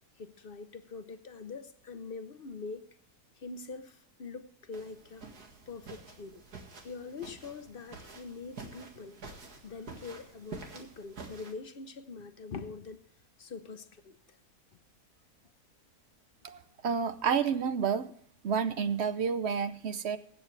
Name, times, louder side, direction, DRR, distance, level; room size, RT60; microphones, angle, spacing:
voice 1, 0.2-2.9 3.4-5.2 5.7-6.4 6.8-9.2 9.6-13.0 13.4-14.4, left 4 dB, 45° left, 0.8 m, -44 dB
sound 1, 4.7-11.5, right 4 dB, 80° right, 2.5 m, -48 dB
voice 2, 16.4-18.1 18.4-20.2, right 6 dB, 55° right, 0.8 m, -30 dB
23.0 x 9.0 x 3.3 m
omnidirectional pair, 1.6 m